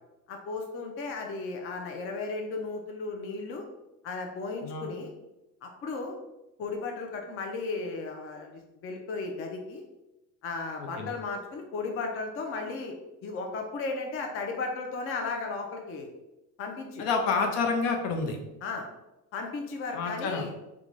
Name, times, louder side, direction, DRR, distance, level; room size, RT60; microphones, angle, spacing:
voice 1, 0.3-3.6 4.0-5.1 5.6-6.2 6.6-9.8 10.4-12.9 13.2-16.1 16.6-17.1 18.6-18.9 19.3-20.5, left 3 dB, 30° left, 2 dB, 0.5 m, -35 dB
voice 2, 10.8-11.1 17.0-18.4 19.9-20.4, left 4 dB, 65° left, 3 dB, 0.8 m, -28 dB
3.7 x 2.4 x 3.0 m, 0.97 s
supercardioid pair, 105°, 44 cm